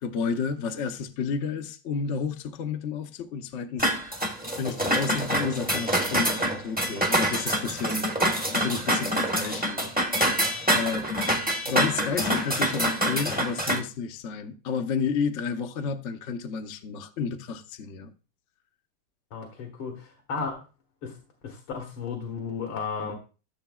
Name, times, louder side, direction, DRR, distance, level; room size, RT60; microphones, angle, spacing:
voice 1, 0.0-3.9 4.6-8.1 8.5-9.9 10.7-11.1 11.6-18.1, left 5 dB, 60° left, 0.7 m, -31 dB
sound 1, 3.8-13.8, equal, 10° right, 0.6 m, -26 dB
voice 2, 19.3-20.6 21.0-21.2 21.4-23.2, left 5 dB, 85° left, 2.2 m, -34 dB
14.0 x 7.0 x 2.3 m
omnidirectional pair, 2.3 m